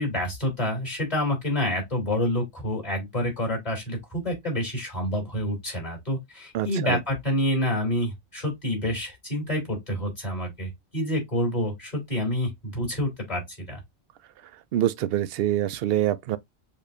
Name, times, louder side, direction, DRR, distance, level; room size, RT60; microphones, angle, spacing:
voice 1, 0.0-13.8, left 1 dB, 40° left, 3.4 m, -28 dB
voice 2, 6.5-7.0 14.7-16.4, right 12 dB, 70° right, 0.7 m, -25 dB
6.7 x 3.0 x 2.6 m
omnidirectional pair, 1.1 m